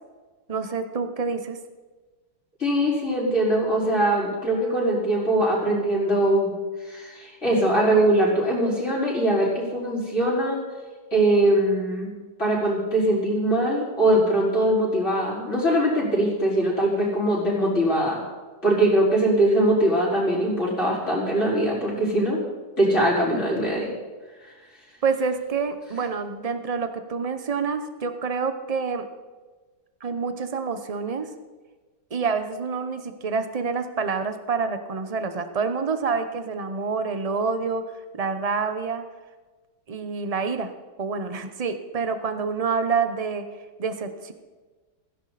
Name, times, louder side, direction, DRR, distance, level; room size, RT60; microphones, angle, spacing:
voice 1, 0.5-1.6 25.0-29.1 30.0-31.3 32.1-37.8 38.1-39.0 39.9-40.7 41.0-43.4 43.8-44.3, right 5 dB, 40° right, 9 dB, 0.5 m, -27 dB
voice 2, 2.6-6.5 6.8-10.6 11.1-12.1 12.4-18.2 18.6-22.4 22.8-23.9, right 1 dB, 35° left, -6 dB, 5.4 m, -22 dB
16.5 x 15.5 x 4.2 m, 1.3 s
omnidirectional pair, 2.2 m